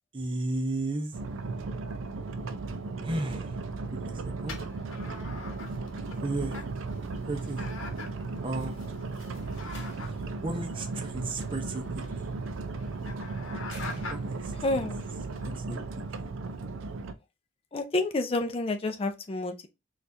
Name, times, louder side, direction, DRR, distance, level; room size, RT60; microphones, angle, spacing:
voice 1, 0.1-1.1 3.0-4.6 6.2-6.6 7.3-7.6 8.4-8.9 10.4-12.0 14.1-14.5 15.4-15.8, right 2 dB, 25° right, 0.6 m, -34 dB
sound 1, 1.1-17.1, right 3 dB, 75° right, 0.4 m, -36 dB
sound 2, 4.5-15.5, left 3 dB, 75° left, 0.9 m, -46 dB
Slam, 9.3-10.4 11.9-12.3 13.6-14.6, left 2 dB, 55° left, 1.3 m, -50 dB
voice 2, 14.6-15.0 17.7-19.7, left 2 dB, 30° left, 0.4 m, -29 dB
4.3 x 2.4 x 2.5 m
head